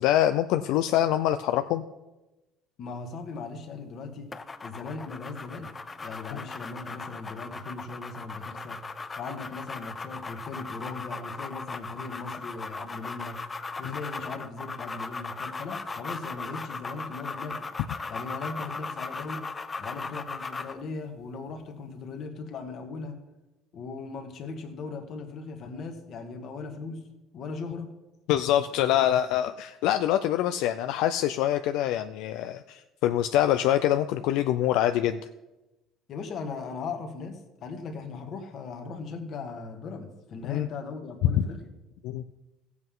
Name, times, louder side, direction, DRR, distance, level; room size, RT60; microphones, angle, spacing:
voice 1, 0.0-1.8 6.3-6.4 13.8-13.9 28.3-35.2 40.5-40.7 41.2-41.5 42.0-42.2, left 12 dB, 75° left, 9 dB, 0.4 m, -25 dB
voice 2, 2.8-4.3 4.6-8.8 9.2-13.4 13.8-17.7 18.1-19.5 19.8-23.2 23.7-27.1 27.3-27.9 36.1-41.7, left 4 dB, 45° left, 5 dB, 1.6 m, -38 dB
sound 1, 4.3-20.8, left 4 dB, 20° left, 0.5 m, -38 dB
15.5 x 8.0 x 3.8 m, 1.0 s
cardioid pair, 140°, 0 cm